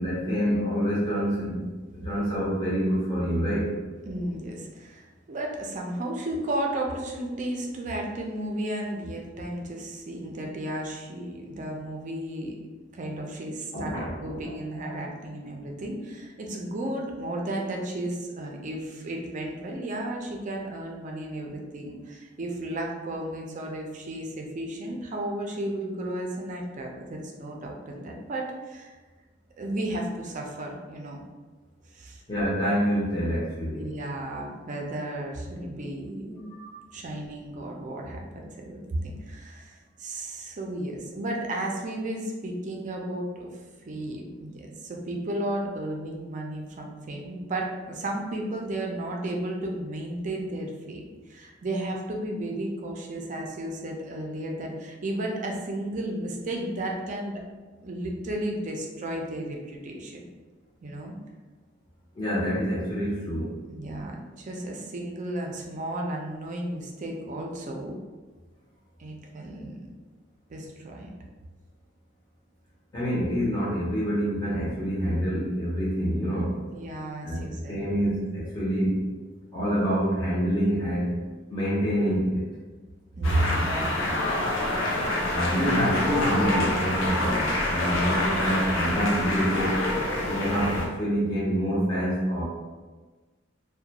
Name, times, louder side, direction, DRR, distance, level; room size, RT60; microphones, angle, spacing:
voice 1, 0.0-3.7 13.7-14.3 14.8-14.9 32.3-33.9 36.5-36.7 62.1-63.6 72.9-76.6 77.2-79.0 79.5-81.1 81.5-82.4 85.3-89.9 90.2-92.4, equal, 20° left, -9 dB, 0.6 m, -27 dB
voice 2, 4.1-12.6 12.9-13.9 14.2-28.9 29.6-31.2 31.9-32.2 33.7-36.5 36.9-43.5 43.9-51.0 51.3-57.4 57.8-60.2 60.8-61.2 63.7-68.0 69.0-69.9 70.5-71.1 76.7-77.8 83.2-84.0, right 1 dB, 40° right, 0 dB, 0.4 m, -33 dB
sound 1, 83.2-90.9, left 1 dB, 85° left, 0.6 m, -26 dB
2.3 x 2.2 x 2.8 m, 1.3 s
head